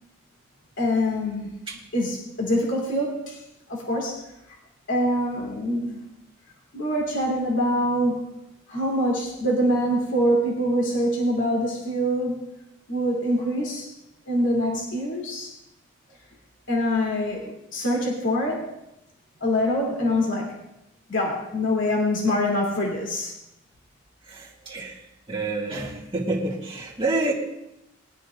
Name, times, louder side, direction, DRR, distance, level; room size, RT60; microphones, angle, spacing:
voice 1, 0.8-1.5 1.9-3.4 3.7-4.2 4.9-6.0 6.7-8.3 8.7-12.4 12.9-13.9 14.3-15.5 16.7-18.6 19.4-20.5 21.1-23.3, equal, 65° left, -3 dB, 3.0 m, -24 dB
voice 2, 24.2-27.3, right 2 dB, 25° right, -4 dB, 1.8 m, -28 dB
21.5 x 12.5 x 2.5 m, 0.87 s
head